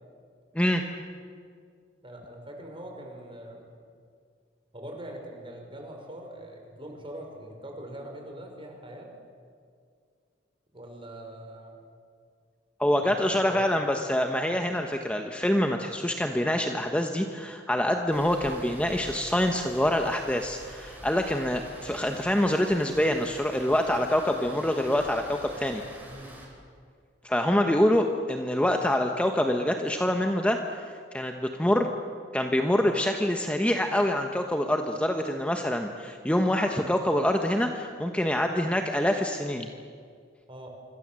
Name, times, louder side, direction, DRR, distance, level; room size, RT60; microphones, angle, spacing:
voice 1, 2.0-3.7 4.7-9.1 10.7-11.8 13.0-13.7 26.1-26.4 40.5-40.7, right 1 dB, 30° right, 2 dB, 5.5 m, -42 dB
voice 2, 12.8-25.8 27.2-30.8 31.1-31.9 32.3-39.7, left 1 dB, 5° left, 4 dB, 1.2 m, -25 dB
Rain, 18.1-26.4, right 1 dB, 10° right, 6.1 m, -46 dB
26.5 x 25.5 x 7.7 m, 2.1 s
head